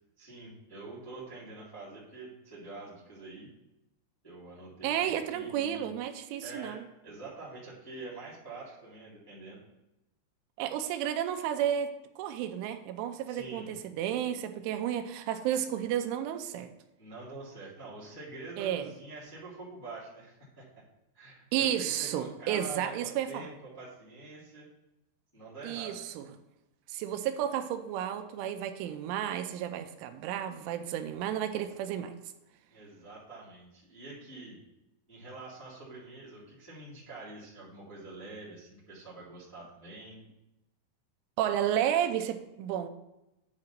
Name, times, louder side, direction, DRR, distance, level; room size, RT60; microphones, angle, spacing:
voice 1, 0.2-3.5 4.2-5.9 6.4-9.6 13.3-13.7 17.0-20.6 21.1-24.7 25.3-26.0 32.7-34.6 35.1-40.2, right 2 dB, 5° left, -9 dB, 1.6 m, -46 dB
voice 2, 4.8-6.9 10.6-16.7 18.6-18.9 21.5-23.5 25.6-26.3 26.9-32.1 41.4-42.9, right 10 dB, 80° right, 8 dB, 3.0 m, -32 dB
9.8 x 3.8 x 5.8 m, 0.92 s
omnidirectional pair, 5.7 m